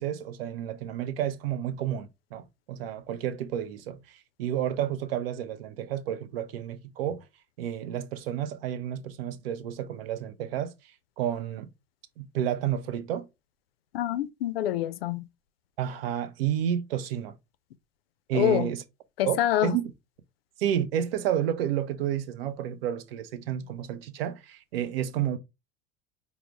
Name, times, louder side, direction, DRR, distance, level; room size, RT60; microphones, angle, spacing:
voice 1, 0.0-7.2 7.6-10.7 11.2-11.7 12.2-13.3 15.8-17.4 18.3-18.8 19.3-19.9 20.6-25.4, right 10 dB, 65° right, 0.7 m, -31 dB
voice 2, 13.9-15.2 18.3-18.7 19.2-19.8, left 12 dB, 70° left, 0.5 m, -26 dB
4.8 x 2.0 x 3.3 m
figure-of-eight pair, 65°, 31 cm